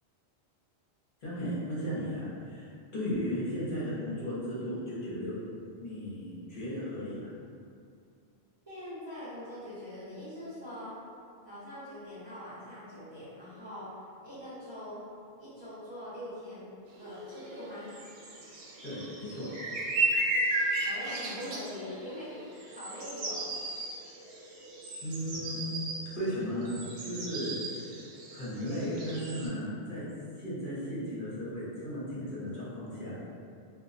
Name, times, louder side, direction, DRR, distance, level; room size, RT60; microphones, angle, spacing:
voice 1, 1.2-5.4 5.8-7.3 18.8-19.5 25.0-25.6 26.1-26.8 27.0-27.6 28.3-30.0 30.4-33.2, equal, 55° left, -10 dB, 0.9 m, -35 dB
voice 2, 8.7-10.9 11.5-15.0 15.4-16.7 17.0-17.9 20.9-23.5, left 1 dB, 30° right, -13 dB, 0.7 m, -43 dB
sound 1, 17.0-29.5, right 2 dB, 70° right, 0.8 m, -35 dB
2.2 x 2.1 x 3.8 m, 2.4 s
omnidirectional pair, 1.1 m